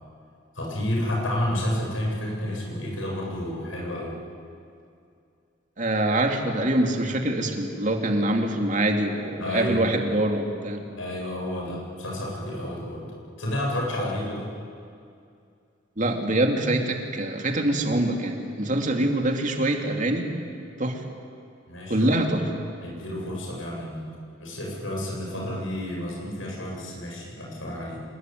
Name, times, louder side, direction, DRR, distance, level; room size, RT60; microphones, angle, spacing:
voice 1, 0.5-4.2 9.4-9.9 11.0-13.1 13.4-14.5 21.7-22.1 22.8-28.0, left 1 dB, 90° left, -2 dB, 7.9 m, -30 dB
voice 2, 5.8-10.8 16.0-20.3 20.8-21.0 21.9-22.5, right 1 dB, 40° right, 3 dB, 2.7 m, -24 dB
26.0 x 21.5 x 9.5 m, 2.5 s
head